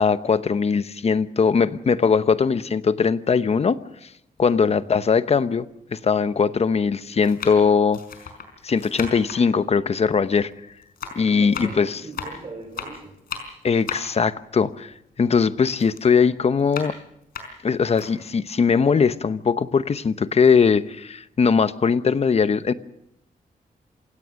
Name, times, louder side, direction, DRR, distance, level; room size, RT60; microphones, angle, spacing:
voice 1, 0.0-3.8 4.4-8.0 8.6-10.5 11.1-12.0 13.6-16.9 17.6-22.7, left 5 dB, 45° left, 13 dB, 0.9 m, -20 dB
sound 1, 4.4-4.5 5.4-5.5 6.4-6.7 7.2-10.6 10.8-15.4 15.7-18.1 18.6-18.7 19.0-20.0 20.3-20.5, left 6 dB, 85° left, 4.8 m, -37 dB
voice 2, 11.2-13.2, right 2 dB, 40° right, 2 dB, 6.9 m, -40 dB
27.5 x 17.0 x 6.4 m, 0.79 s
wide cardioid pair, 110°, 15 cm